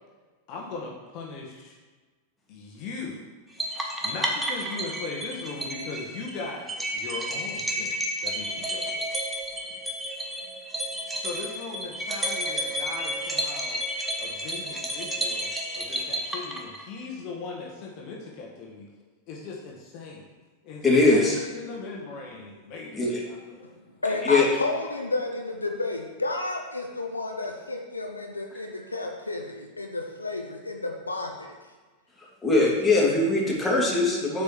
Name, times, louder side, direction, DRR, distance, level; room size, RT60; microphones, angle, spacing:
voice 1, 0.5-1.8 2.5-3.2 4.0-9.1 11.2-13.8 14.2-15.5 15.7-18.9 19.3-20.3 20.6-23.7, left 4 dB, 40° left, -1 dB, 1.5 m, -39 dB
sound 1, 3.6-17.0, equal, 10° right, 1.3 m, -31 dB
voice 2, 20.8-21.4 22.9-23.2 24.2-24.4 32.4-34.4, left 2 dB, 15° left, -4 dB, 2.7 m, -21 dB
voice 3, 24.0-31.5 32.6-33.0, left 2 dB, 80° left, 2 dB, 0.9 m, -31 dB
8.3 x 5.1 x 6.2 m, 1.3 s
figure-of-eight pair, 90°, 0 cm